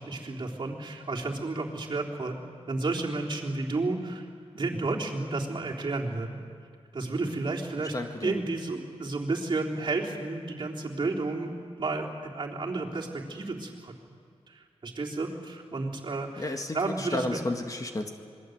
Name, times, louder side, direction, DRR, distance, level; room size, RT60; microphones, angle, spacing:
voice 1, 0.0-2.4 2.7-4.3 4.5-6.4 6.9-7.9 8.2-11.5 11.8-13.9 14.5-17.4, right 3 dB, 45° right, -2 dB, 3.5 m, -32 dB
voice 2, 7.9-8.4 16.4-18.1, left 2 dB, 30° left, 4 dB, 1.9 m, -32 dB
27.0 x 21.5 x 8.0 m, 2.2 s
wide cardioid pair, 90°, 11 cm